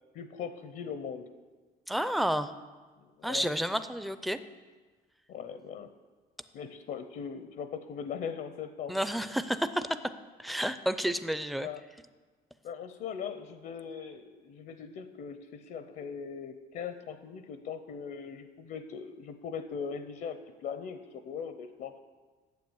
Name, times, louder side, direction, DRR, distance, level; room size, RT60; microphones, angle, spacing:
voice 1, 0.1-1.3 3.0-3.5 5.3-5.9 6.5-9.1 11.6-11.8 12.6-22.0, left 7 dB, 65° left, 10 dB, 0.7 m, -40 dB
voice 2, 1.9-2.5 3.2-4.4 8.9-9.9 10.4-11.7, equal, ahead, 11 dB, 0.5 m, -30 dB
9.4 x 7.6 x 7.0 m, 1.4 s
cardioid pair, 110°, 17 cm